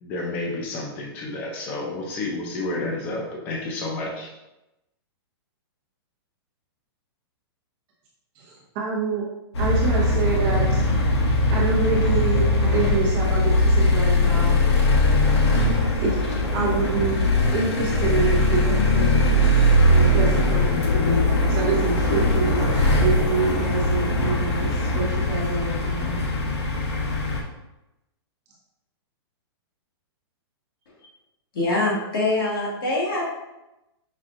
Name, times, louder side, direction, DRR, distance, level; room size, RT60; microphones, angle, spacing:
voice 1, 0.0-4.3, left 2 dB, 10° left, 0 dB, 0.3 m, -30 dB
voice 2, 8.4-9.2 9.6-10.8 11.5-14.6 16.0-16.2 16.5-19.3 19.9-26.2, right 4 dB, 25° right, -5 dB, 0.8 m, -27 dB
sound 1, 9.5-27.4, left 1 dB, 80° left, 0.9 m, -20 dB
voice 3, 31.5-33.3, left 2 dB, 55° left, -4 dB, 1.4 m, -24 dB
5.7 x 2.4 x 2.5 m, 0.94 s
hypercardioid pair, 175°, 14 cm